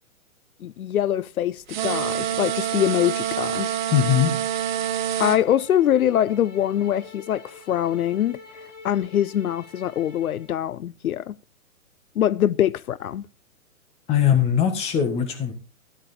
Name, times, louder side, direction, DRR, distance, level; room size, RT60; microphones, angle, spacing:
voice 1, 0.6-3.7 5.2-8.4 8.8-11.3 12.2-13.2, left 11 dB, 75° left, 0.6 m, -23 dB
sound 1, 1.7-10.5, left 5 dB, 55° left, 6.8 m, -47 dB
sound 2, 1.7-5.4, right 10 dB, 30° right, 1.0 m, -26 dB
voice 2, 3.9-4.3 14.1-15.5, left 9 dB, 15° left, 1.5 m, -20 dB
13.5 x 10.5 x 4.3 m
hypercardioid pair, 155°, 44 cm